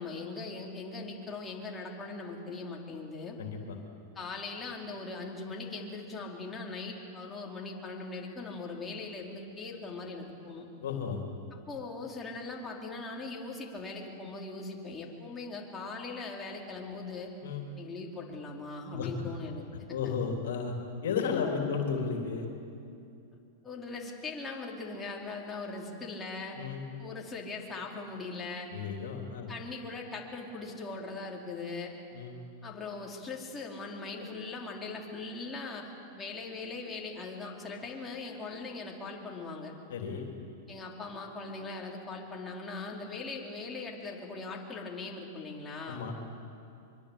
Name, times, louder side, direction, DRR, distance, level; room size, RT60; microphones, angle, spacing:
voice 1, 0.0-3.4 4.1-10.7 11.7-17.3 17.7-20.1 23.6-26.6 27.0-28.7 29.5-31.9 32.6-35.9 36.2-39.7 40.7-46.0, left 3 dB, 20° left, -2 dB, 4.7 m, -40 dB
voice 2, 3.4-3.8 10.8-11.2 17.4-17.6 18.9-19.1 19.9-20.7 21.0-22.5 26.6-26.8 28.7-29.5 32.1-32.3 39.9-40.2 45.8-46.1, left 6 dB, 70° left, 2 dB, 3.4 m, -33 dB
24.5 x 24.0 x 8.5 m, 2.6 s
hypercardioid pair, 105°, 0 cm